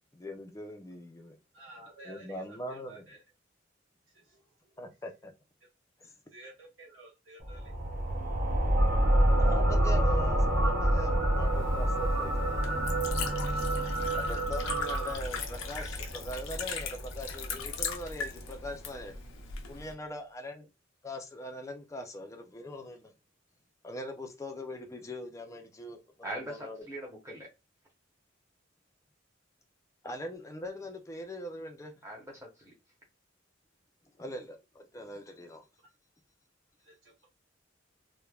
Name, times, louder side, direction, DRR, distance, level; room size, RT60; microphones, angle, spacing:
voice 1, 0.1-1.4 2.0-3.1 4.8-5.3 6.0-6.1 9.4-12.6 14.1-19.1 19.7-20.7 21.0-23.1 23.8-26.0 26.5-26.8 30.0-31.9 34.2-35.6, left 1 dB, 15° left, 0.4 m, -41 dB
voice 2, 1.5-3.2 4.1-4.4 6.3-7.8 36.8-37.2, right 2 dB, 75° right, 1.2 m, -52 dB
sound 1, 7.4-18.6, equal, 45° right, 0.7 m, -29 dB
sound 2, 8.8-15.2, right 3 dB, 90° right, 0.8 m, -34 dB
Liquid, 11.4-19.9, left 6 dB, 85° left, 0.6 m, -40 dB
voice 3, 26.2-27.5 32.0-32.7, right 1 dB, 15° right, 0.9 m, -41 dB
3.1 x 2.1 x 2.3 m
head